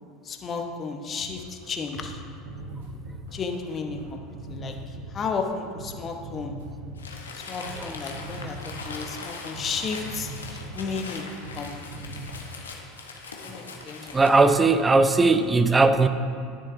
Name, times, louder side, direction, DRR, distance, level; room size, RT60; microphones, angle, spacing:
voice 1, 0.2-2.2 3.3-4.2 4.5-6.5 7.3-10.3 10.7-11.3 11.5-12.1 13.4-14.2, left 5 dB, 35° left, 4 dB, 1.0 m, -33 dB
sound 1, 1.2-7.9 8.1-9.2 9.5-9.7 10.0-11.1 11.4-11.6 11.9-12.3, right 2 dB, 80° right, 1.3 m, -40 dB
Crumpling crinkling, 7.0-14.6, left 4 dB, 90° left, 0.9 m, -40 dB
voice 2, 14.1-16.1, right 3 dB, 20° right, 10 dB, 0.6 m, -19 dB
10.0 x 9.9 x 2.6 m, 2.1 s
hypercardioid pair, 80°, 0 cm